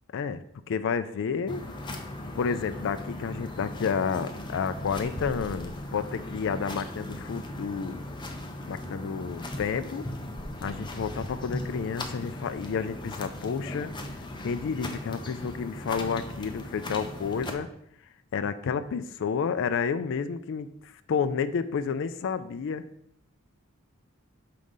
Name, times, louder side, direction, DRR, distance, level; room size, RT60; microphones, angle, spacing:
voice 1, 0.1-1.6 2.4-8.0 8.7-10.1 10.6-13.9 14.4-17.7 18.3-22.8, left 6 dB, 55° left, 11 dB, 0.4 m, -30 dB
sound 1, 1.5-17.5, left 1 dB, 20° left, 0.7 m, -38 dB
6.5 x 3.8 x 5.4 m, 0.73 s
head